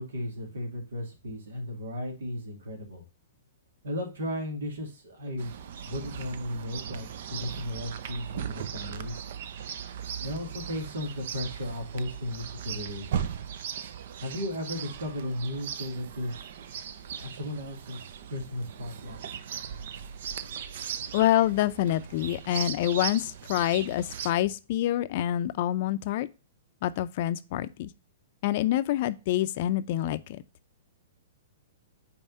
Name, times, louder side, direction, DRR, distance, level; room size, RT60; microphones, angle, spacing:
voice 1, 0.0-3.0 3.8-5.5 5.9-9.2 10.2-13.1 14.2-16.4 17.2-19.2, left 1 dB, 85° right, 2.4 m, -35 dB
Chirp tweet, 5.4-24.3, right 8 dB, 60° right, 0.6 m, -38 dB
voice 2, 21.1-26.3 26.8-27.9 28.4-30.4, left 13 dB, 50° left, 0.5 m, -27 dB
5.6 x 4.2 x 5.3 m
hypercardioid pair, 130°, 0 cm